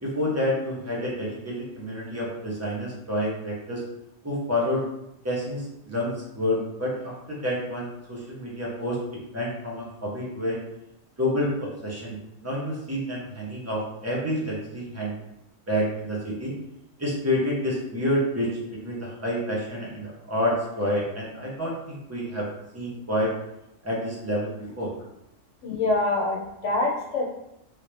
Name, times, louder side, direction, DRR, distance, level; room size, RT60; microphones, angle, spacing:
voice 1, 0.0-3.8 4.2-4.8 5.2-9.0 9.3-10.6 11.2-11.5 11.8-15.2 15.7-16.5 17.0-18.5 18.8-22.5 22.7-23.3 23.8-24.9, left 1 dB, 15° right, -5 dB, 0.7 m, -28 dB
voice 2, 25.6-27.2, left 2 dB, 70° left, -2 dB, 1.1 m, -25 dB
3.3 x 2.7 x 3.1 m, 0.85 s
omnidirectional pair, 1.3 m